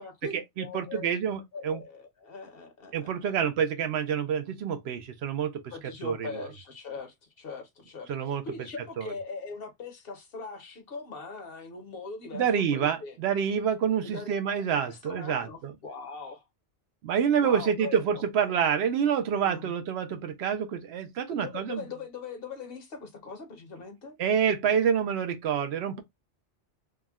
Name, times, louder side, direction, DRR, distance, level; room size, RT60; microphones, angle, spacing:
voice 1, 0.0-1.2 1.5-3.3 5.7-13.2 14.0-14.3 14.6-16.4 17.4-18.2 19.3-19.8 21.3-24.1, left 4 dB, 55° left, 0.9 m, -41 dB
voice 2, 0.6-1.8 2.9-5.7 6.0-6.5 8.1-8.4 9.0-9.1 12.3-15.7 17.0-21.8 24.2-26.0, right 7 dB, 70° right, 0.8 m, -27 dB
3.4 x 2.1 x 2.2 m
omnidirectional pair, 1.2 m